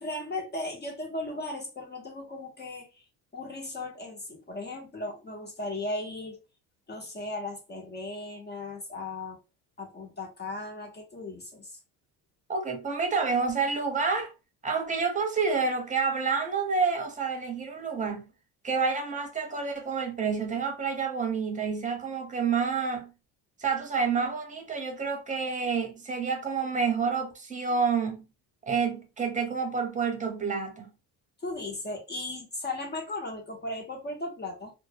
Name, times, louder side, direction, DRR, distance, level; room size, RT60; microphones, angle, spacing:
voice 1, 0.0-3.0 3.3-6.4 6.9-9.4 9.8-11.8 31.4-34.7, left 2 dB, 25° left, 0.6 m, -36 dB
voice 2, 12.5-14.3 14.6-18.2 18.6-23.1 23.6-28.2 28.7-30.9, right 5 dB, 20° right, 0.7 m, -28 dB
2.0 x 2.0 x 3.2 m
supercardioid pair, 95°, 40 cm